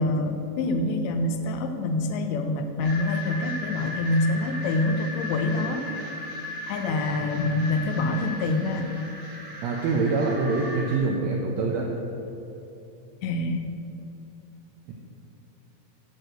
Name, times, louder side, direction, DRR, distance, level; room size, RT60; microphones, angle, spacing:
voice 1, 0.0-5.8 6.7-8.9 13.2-13.6, left 2 dB, 75° left, 6 dB, 1.7 m, -26 dB
sound 1, 2.8-11.0, left 1 dB, 35° right, 1.1 m, -36 dB
voice 2, 9.6-11.9 14.9-15.0, right 3 dB, 75° right, -1 dB, 1.7 m, -25 dB
9.6 x 4.8 x 7.6 m, 2.9 s
omnidirectional pair, 3.7 m